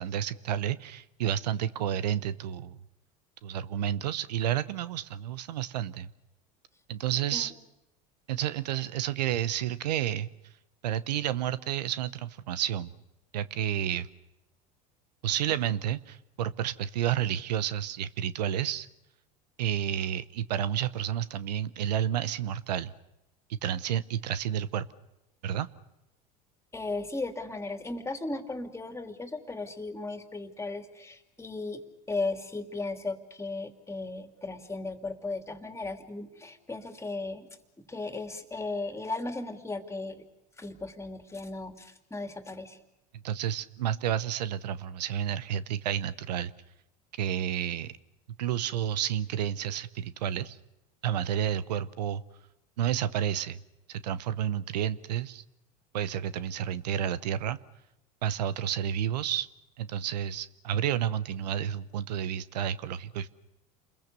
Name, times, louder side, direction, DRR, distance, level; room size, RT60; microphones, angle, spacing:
voice 1, 0.0-2.8 3.4-6.1 6.9-7.5 8.3-10.3 10.8-12.9 13.3-14.1 15.2-18.9 19.6-22.9 23.5-24.9 25.4-25.7 43.2-46.5 47.2-47.9 48.4-50.6 51.0-52.2 52.8-53.6 53.9-55.4 55.9-57.6 58.2-59.5 59.8-63.3, right 10 dB, 85° right, 16 dB, 0.9 m, -30 dB
voice 2, 26.7-37.5 37.9-40.2 40.6-42.8, left 3 dB, 15° left, 7 dB, 2.9 m, -36 dB
28.5 x 21.5 x 6.8 m, 0.91 s
hypercardioid pair, 90°, 21 cm